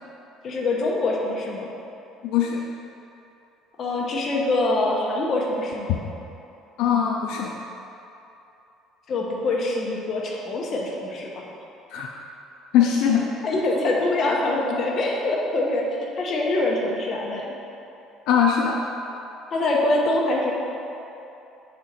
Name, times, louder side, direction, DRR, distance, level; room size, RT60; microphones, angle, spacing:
voice 1, 0.4-1.7 3.8-6.0 9.1-11.3 13.4-17.5 19.5-20.5, left 2 dB, 35° left, -2 dB, 0.9 m, -24 dB
voice 2, 2.2-2.6 6.8-7.5 11.9-12.1 12.7-13.3 18.3-18.8, left 8 dB, 70° left, 0 dB, 0.4 m, -21 dB
6.3 x 4.4 x 4.1 m, 2.9 s
cardioid pair, 160°, 0 cm